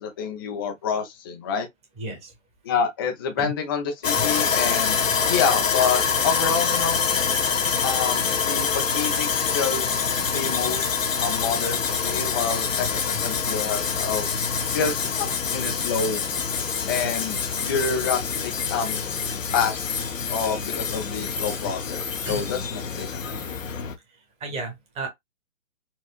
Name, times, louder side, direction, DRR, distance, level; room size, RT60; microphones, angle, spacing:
voice 1, 0.0-1.7 2.6-5.0 5.2-7.0 7.8-14.3 14.7-16.2 16.9-19.0 19.5-20.0 20.3-23.3, left 6 dB, 20° left, 0.4 m, -28 dB
voice 2, 2.0-2.3 3.4-3.5 7.5-7.6 14.7-14.8 22.3-22.4 24.4-25.1, right 2 dB, 15° right, 1.2 m, -33 dB
Sawing, 4.0-23.9, left 6 dB, 90° left, 0.9 m, -26 dB
4.3 x 2.3 x 2.3 m
hypercardioid pair, 135°, 38 cm